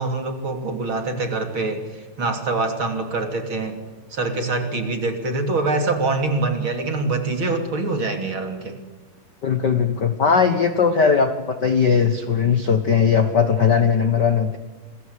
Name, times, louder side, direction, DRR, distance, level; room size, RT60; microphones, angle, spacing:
voice 1, 0.0-3.8 4.1-8.8, right 3 dB, 35° right, 6 dB, 3.3 m, -24 dB
voice 2, 9.4-14.6, left 6 dB, 70° left, 8 dB, 1.0 m, -19 dB
27.5 x 21.5 x 8.3 m, 1.3 s
omnidirectional pair, 4.2 m